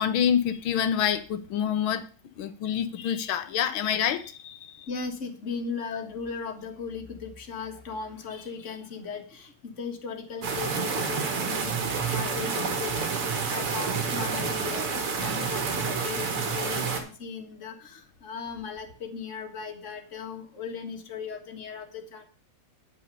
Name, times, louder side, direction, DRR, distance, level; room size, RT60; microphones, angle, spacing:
voice 1, 0.0-2.1 2.4-4.9, left 8 dB, 70° left, 11 dB, 1.7 m, -27 dB
voice 2, 4.9-22.3, left 5 dB, 35° left, 5 dB, 1.7 m, -37 dB
sound 1, 10.4-17.0, right 5 dB, 85° right, 2.8 m, -29 dB
9.7 x 5.8 x 6.6 m, 0.39 s
omnidirectional pair, 2.4 m